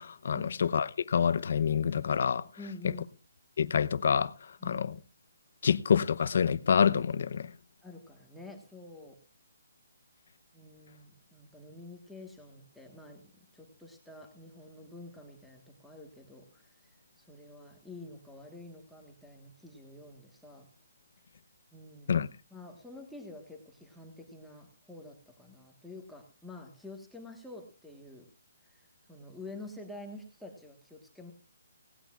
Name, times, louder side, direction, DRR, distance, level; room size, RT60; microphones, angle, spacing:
voice 1, 0.0-2.5 3.6-4.3 4.6-4.9 5.6-7.5 22.1-22.3, left 7 dB, 50° left, 0.7 m, -27 dB
voice 2, 2.6-3.1 4.6-4.8 7.8-9.2 10.5-20.7 21.7-22.2 22.5-28.3 28.6-31.3, left 2 dB, ahead, 1.4 m, -48 dB
18.0 x 17.0 x 2.4 m
hypercardioid pair, 175°, 0 cm